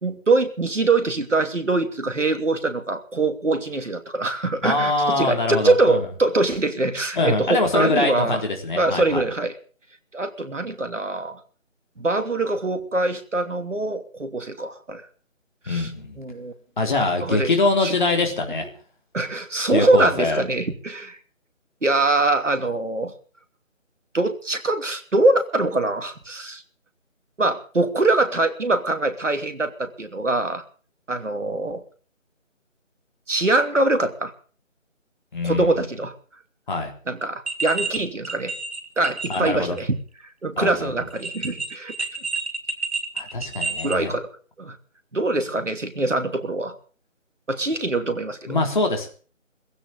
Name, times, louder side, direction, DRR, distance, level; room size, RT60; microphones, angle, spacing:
voice 1, 0.0-8.4 8.8-9.5 10.1-11.4 12.0-15.0 15.7-15.9 16.2-16.5 17.2-17.5 17.8-17.9 19.1-21.2 21.8-23.1 24.1-26.6 27.4-30.6 31.1-31.8 33.3-34.3 35.4-36.1 37.1-38.5 39.0-39.9 40.4-41.9 43.8-44.3 44.6-44.8 45.1-46.7 47.5-48.6, right 2 dB, 70° right, 8 dB, 3.0 m, -23 dB
voice 2, 4.6-6.1 7.2-9.2 15.7-16.2 16.8-18.7 19.7-20.4 35.3-35.7 36.7-36.9 39.3-39.8 40.6-40.9 43.2-44.1 48.5-49.1, left 2 dB, 35° left, 3 dB, 3.8 m, -23 dB
sound 1, 37.5-38.0 38.2-39.5 39.8-39.9 41.1-44.0, right 4 dB, 55° right, 2.1 m, -29 dB
17.0 x 15.5 x 5.3 m, 0.41 s
figure-of-eight pair, 160°, 39 cm